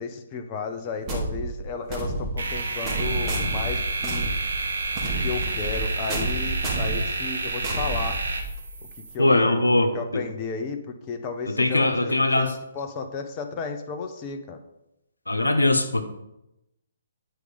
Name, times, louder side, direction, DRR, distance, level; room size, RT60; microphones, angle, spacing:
voice 1, 0.0-4.3 5.0-8.2 9.1-9.7 9.9-10.8 11.1-14.6, left 5 dB, 30° left, 5 dB, 1.0 m, -33 dB
sound 1, 1.1-8.7, right 2 dB, 25° right, 2.5 m, -30 dB
sound 2, 2.4-9.1, right 3 dB, 65° right, 1.4 m, -30 dB
voice 2, 9.2-10.2 11.5-12.5 15.3-16.0, left 2 dB, 90° left, 6 dB, 1.1 m, -21 dB
9.4 x 5.1 x 5.2 m, 0.87 s
figure-of-eight pair, 135°, 0 cm